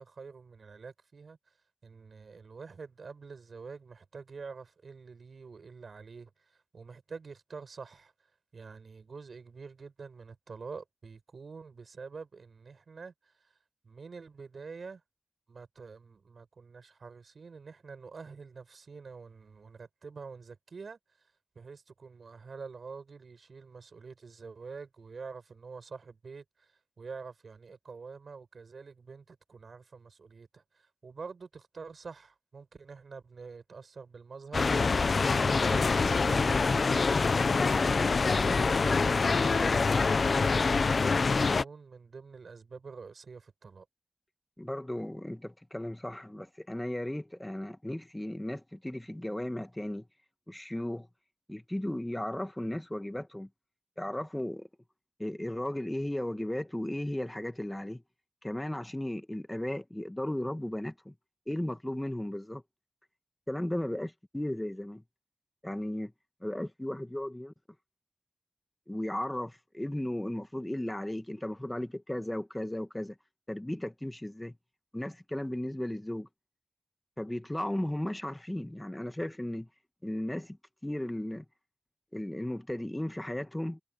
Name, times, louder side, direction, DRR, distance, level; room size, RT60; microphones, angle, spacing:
voice 1, 0.0-1.5 1.8-8.1 8.5-13.5 13.8-15.0 15.5-21.0 21.5-43.8, right 5 dB, 90° right, 6.8 m, -47 dB
sound 1, 34.5-41.6, left 4 dB, 75° left, 0.7 m, -25 dB
voice 2, 44.6-50.1 50.5-51.1 51.5-53.5 54.0-54.7 55.2-58.0 58.4-61.1 61.5-62.6 63.5-65.0 65.6-66.1 66.4-67.5 68.9-73.2 73.5-74.6 74.9-76.3 77.2-79.7 80.0-80.6 80.8-81.4 82.1-83.8, left 1 dB, 15° left, 1.5 m, -35 dB
wide cardioid pair, 65°, 0 cm